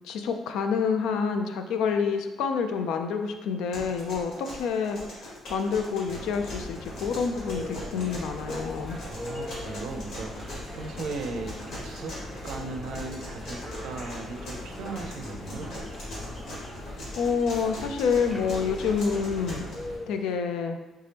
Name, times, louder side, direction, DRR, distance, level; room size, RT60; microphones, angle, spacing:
voice 1, 0.0-5.0 5.5-9.0 17.2-19.7 20.1-20.8, left 6 dB, 90° left, 6 dB, 0.3 m, -28 dB
sound 1, 3.7-19.7, equal, 70° left, 1.5 m, -41 dB
sound 2, 6.0-20.0, left 1 dB, 45° left, 0.9 m, -41 dB
sound 3, 7.5-20.3, left 1 dB, 5° left, 0.4 m, -44 dB
voice 2, 9.0-11.6 11.8-12.2 12.4-15.8, right 3 dB, 75° right, 4 dB, 0.4 m, -37 dB
3.3 x 2.8 x 3.3 m, 1.1 s
cardioid pair, 125°, 0 cm